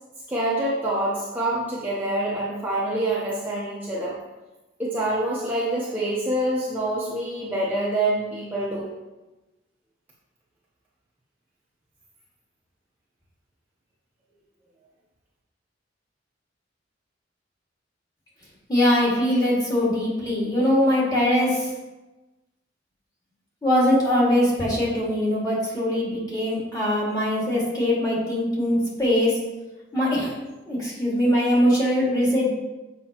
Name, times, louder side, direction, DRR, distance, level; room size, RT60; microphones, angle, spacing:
voice 1, 0.3-4.2 4.8-8.9, right 1 dB, 10° right, -7 dB, 0.9 m, -26 dB
voice 2, 18.7-21.7 23.6-29.4 29.9-30.3 30.7-32.5, left 1 dB, 20° left, -6 dB, 2.0 m, -22 dB
7.4 x 5.4 x 2.9 m, 1.1 s
head